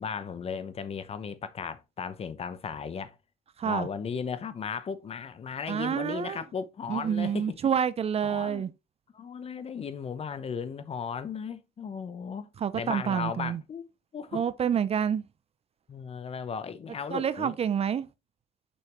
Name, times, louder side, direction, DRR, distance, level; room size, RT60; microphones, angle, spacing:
voice 1, 0.0-3.2 3.6-7.6 8.2-8.6 9.1-13.9 14.1-14.4 15.9-17.5, left 6 dB, 35° left, 0.8 m, -36 dB
voice 2, 5.7-6.4 6.9-8.7 12.6-13.6 14.3-15.2 17.1-18.1, right 8 dB, 35° right, 0.6 m, -28 dB
6.3 x 5.6 x 3.0 m
cardioid pair, 110°, 17 cm